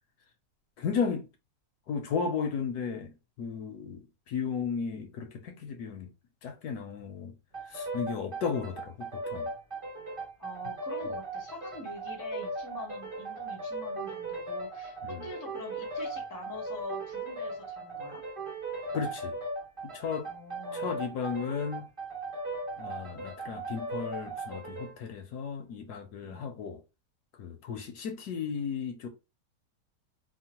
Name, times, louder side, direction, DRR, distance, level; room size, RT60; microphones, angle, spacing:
voice 1, 0.8-1.3 1.9-3.1 3.4-6.1 6.4-7.3 7.7-9.5 15.0-15.2 18.9-19.3 19.8-20.3 20.7-21.9 22.8-26.8 27.4-29.1, left 6 dB, 70° left, 1.0 m, -34 dB
sound 1, 7.5-25.0, right 2 dB, 25° right, 0.7 m, -38 dB
voice 2, 10.4-18.2 20.3-20.9 26.2-26.5, left 2 dB, 30° left, 0.3 m, -45 dB
3.5 x 2.0 x 2.8 m
omnidirectional pair, 1.9 m